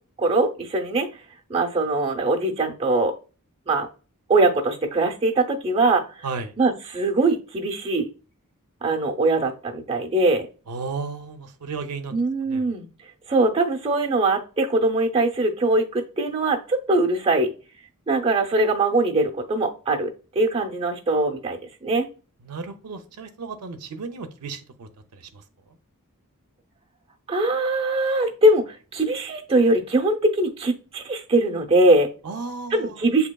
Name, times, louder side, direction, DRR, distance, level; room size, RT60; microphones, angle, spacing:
voice 1, 0.2-1.1 1.5-3.1 3.7-3.9 4.3-6.0 6.6-8.1 8.8-10.5 12.1-12.9 13.3-17.5 18.1-22.1 27.3-32.1 32.7-33.3, right 2 dB, 25° right, 2 dB, 0.7 m, -22 dB
voice 2, 6.2-6.5 10.7-12.2 12.5-12.7 22.4-25.4 32.2-33.1, right 4 dB, 90° right, 7 dB, 0.5 m, -34 dB
7.2 x 2.8 x 2.2 m, 0.35 s
head